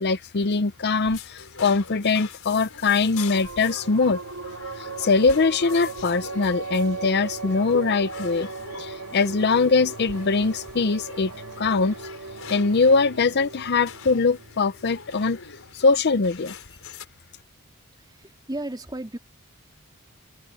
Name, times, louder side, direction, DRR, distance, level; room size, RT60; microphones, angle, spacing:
voice 1, 0.0-4.2 4.8-8.5 9.1-11.3 11.6-11.9 12.5-15.4 15.7-16.5, left 4 dB, 50° left, 0.6 m, -22 dB
sound 1, 1.0-17.1, left 6 dB, 65° left, 5.4 m, -44 dB
sound 2, 3.1-16.0, right 3 dB, 85° right, 2.9 m, -38 dB
voice 2, 18.0-19.2, right 1 dB, 20° right, 2.9 m, -35 dB
head